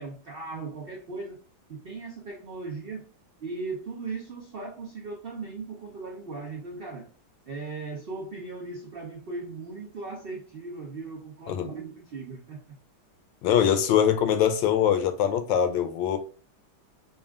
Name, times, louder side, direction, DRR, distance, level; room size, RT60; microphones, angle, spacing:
voice 1, 0.0-1.4 1.7-3.1 3.4-7.1 7.5-12.8, right 3 dB, 90° right, 0.5 m, -38 dB
voice 2, 13.4-16.2, left 9 dB, 85° left, 1.3 m, -23 dB
5.4 x 2.4 x 2.3 m
omnidirectional pair, 2.0 m